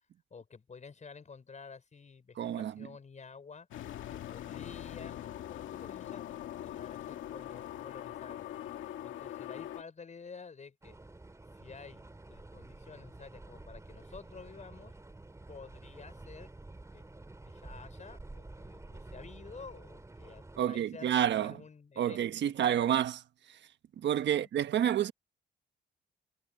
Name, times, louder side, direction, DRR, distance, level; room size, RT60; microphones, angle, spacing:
voice 1, 0.3-3.7 4.1-6.2 6.6-8.5 9.0-11.0 11.6-14.9 15.5-16.5 16.9-17.0 17.4-22.5 24.0-24.5, left 5 dB, 35° left, 5.2 m, -51 dB
voice 2, 2.4-2.9 20.6-21.6 22.0-23.2 23.5-23.6 24.0-25.1, right 10 dB, 65° right, 1.3 m, -29 dB
sound 1, 3.7-9.8, left 12 dB, 75° left, 2.1 m, -42 dB
sound 2, 10.8-20.6, right 2 dB, 15° right, 2.9 m, -50 dB
cardioid pair, 90°, 20 cm